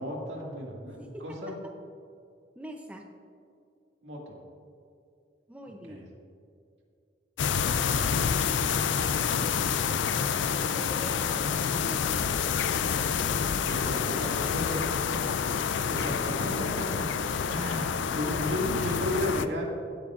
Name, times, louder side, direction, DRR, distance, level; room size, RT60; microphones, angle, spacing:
voice 1, 0.0-1.5 4.0-4.4 5.9-6.0 13.6-14.8 15.9-16.8 17.5-19.7, left 1 dB, 70° right, -2 dB, 2.1 m, -34 dB
voice 2, 2.6-3.0 5.5-6.0 10.2-12.1 12.9-15.0 17.6-17.8 18.1-19.3, right 1 dB, 5° right, 2 dB, 0.6 m, -45 dB
sound 1, 7.4-19.5, left 7 dB, 85° left, 0.4 m, -28 dB
16.0 x 8.4 x 2.5 m, 2.5 s
head